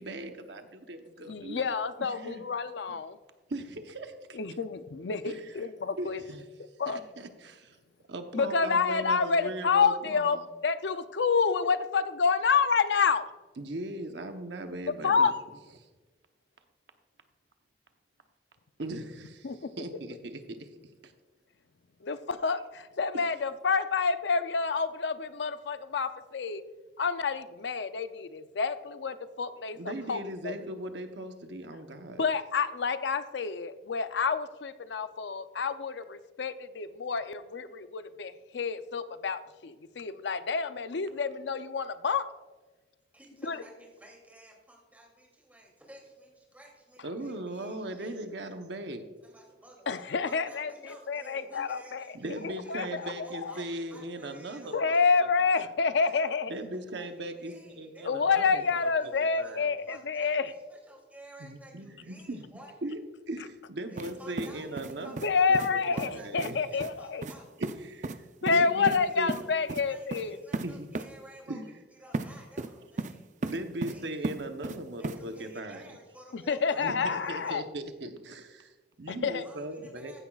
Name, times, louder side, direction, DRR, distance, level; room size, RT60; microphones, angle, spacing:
voice 1, 0.0-1.7 2.0-2.4 3.5-4.6 5.2-5.7 6.0-6.5 6.9-7.8 8.1-10.4 13.6-15.3 15.8-15.9 18.8-20.7 21.0-21.1 23.1-23.2 29.7-32.2 47.0-49.0 52.1-54.9 56.5-58.8 59.0-59.8 61.4-62.5 62.8-63.0 63.3-65.2 65.7-65.8 66.1-66.6 67.6-69.4 70.6-70.9 71.5-71.6 73.4-76.0 76.8-80.2, right 1 dB, 75° right, 6 dB, 0.9 m, -39 dB
voice 2, 1.2-3.2 4.4-6.2 6.8-7.0 8.3-10.4 10.6-13.3 15.0-15.3 19.4-19.6 22.0-26.6 27.0-30.2 30.4-30.5 32.1-42.2 43.4-43.6 49.9-50.7 51.1-52.0 52.4-53.5 54.7-56.5 58.1-60.5 65.2-67.2 68.4-70.3 76.3-77.6 79.1-79.4, left 5 dB, 80° left, 11 dB, 0.5 m, -28 dB
voice 3, 43.1-48.1 49.2-55.0 56.5-62.8 63.9-65.6 65.9-67.5 68.8-71.6 71.9-73.3 73.9-74.2 75.0-77.6 79.4-80.2, right 1 dB, 10° right, -1 dB, 2.7 m, -53 dB
sound 1, 64.0-64.1 64.4-65.3 65.5-65.7 66.0-66.1 66.4-66.5 66.8-66.9 67.2-67.4 67.6-67.8 68.0-68.2 68.5-69.0 69.3-69.4 69.7-69.8 70.1-70.2 70.5-70.7 70.9-71.1 72.1-72.3 72.6-73.1 73.4-73.9 74.2-74.8 75.0-75.2, right 3 dB, 45° right, 0.5 m, -34 dB
14.5 x 10.0 x 2.4 m, 1.2 s
head